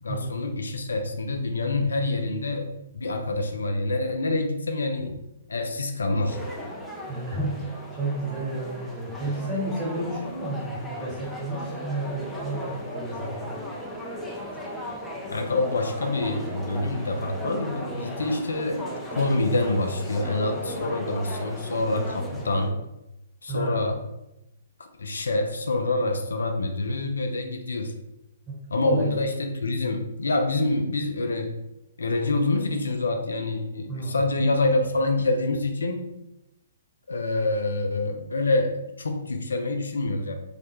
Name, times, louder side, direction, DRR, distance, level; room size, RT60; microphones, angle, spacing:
voice 1, 0.0-5.2 5.5-6.4 15.3-18.8 19.1-22.7 23.4-24.0 24.8-28.0 28.7-31.5 32.0-36.0 37.1-40.3, left 2 dB, 80° left, 5 dB, 0.4 m, -26 dB
sound 1, 6.3-22.7, equal, 5° left, 0.4 m, -36 dB
voice 2, 7.1-7.6 7.9-13.5 22.3-22.4 23.5-23.9 28.5-28.6 28.8-29.1 33.9-34.2, right 2 dB, 20° right, -7 dB, 1.2 m, -31 dB
2.4 x 2.1 x 2.9 m, 0.89 s
figure-of-eight pair, 125°, 0 cm